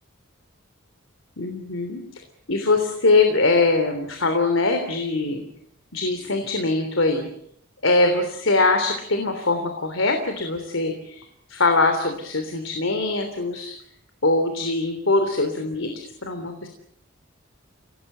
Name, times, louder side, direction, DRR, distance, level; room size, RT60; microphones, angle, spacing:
voice 1, 1.4-2.2 2.5-5.4 5.9-7.3 7.8-13.7 14.2-15.9 16.2-16.7, left 3 dB, 80° left, 6 dB, 3.3 m, -22 dB
29.5 x 18.5 x 8.1 m, 0.72 s
head